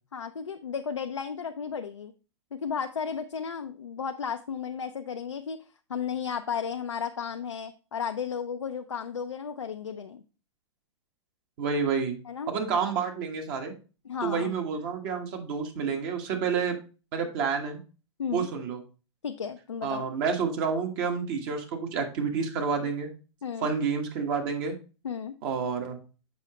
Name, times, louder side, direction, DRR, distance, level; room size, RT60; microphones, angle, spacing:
voice 1, 0.1-2.1 2.5-5.6 5.9-10.2 12.3-12.5 14.0-14.5 18.2-18.5 19.2-20.0 23.4-23.7 25.0-25.4, left 7 dB, 85° left, 7 dB, 0.4 m, -34 dB
voice 2, 11.6-12.2 12.5-13.7 14.2-16.8 17.1-17.8 18.3-18.8 19.8-23.1 23.6-24.7 25.4-26.0, right 6 dB, 50° right, 3 dB, 1.4 m, -29 dB
7.0 x 4.7 x 3.0 m, 0.34 s
hypercardioid pair, 105°, 15 cm